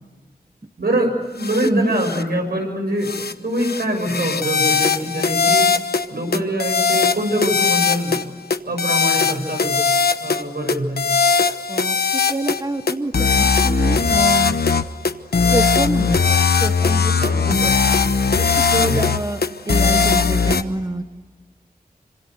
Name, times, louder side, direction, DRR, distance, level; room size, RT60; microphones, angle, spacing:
voice 1, 0.8-5.7 6.1-9.9 10.2-11.1 17.2-17.4 18.7-19.0, right 1 dB, 85° right, 3 dB, 7.1 m, -24 dB
sound 1, 1.4-1.7 2.0-2.2 3.0-3.3 3.6-6.1 6.3-8.2 8.5-10.4 10.7-12.6 12.9-20.6, left 5 dB, 85° left, 1.1 m, -19 dB
voice 2, 11.7-14.5 15.5-16.2 16.6-17.1 17.5-17.9 18.4-21.1, right 2 dB, 25° right, 8 dB, 1.1 m, -26 dB
26.5 x 26.0 x 8.1 m, 1.4 s
wide cardioid pair, 85°, 16 cm